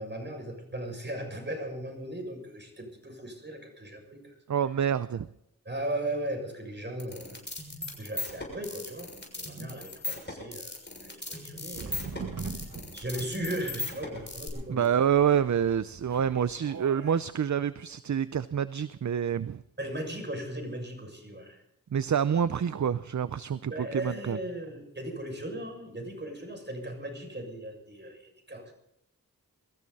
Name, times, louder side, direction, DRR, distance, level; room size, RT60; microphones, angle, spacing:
voice 1, 0.0-4.4 5.7-7.4 8.0-12.1 12.5-12.6 12.9-14.9 19.8-21.6 23.7-28.7, right 1 dB, 30° right, 3 dB, 6.8 m, -37 dB
voice 2, 4.5-5.3 14.7-19.6 21.9-24.4, right 8 dB, 55° right, 15 dB, 0.6 m, -27 dB
sound 1, 7.0-14.5, left 2 dB, 30° left, 6.4 m, -37 dB
sound 2, 11.7-17.2, right 4 dB, 70° right, 1.7 m, -43 dB
24.0 x 14.5 x 4.2 m, 0.78 s
cardioid pair, 50°, 35 cm